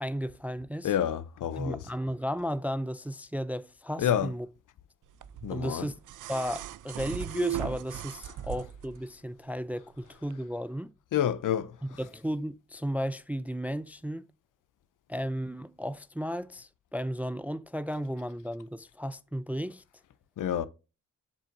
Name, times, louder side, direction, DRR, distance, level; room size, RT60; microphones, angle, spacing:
voice 1, 0.0-0.9 1.6-4.5 5.5-5.9 6.3-10.9 12.0-14.3 15.1-19.8, equal, 5° right, 0.3 m, -34 dB
voice 2, 0.8-1.8 4.0-4.3 5.4-5.9 11.1-12.0 20.4-20.7, left 10 dB, 70° left, 0.7 m, -29 dB
sound 1, 5.2-9.0 10.2-10.3, right 11 dB, 65° right, 0.5 m, -38 dB
7.2 x 5.1 x 2.6 m
cardioid pair, 70°, 33 cm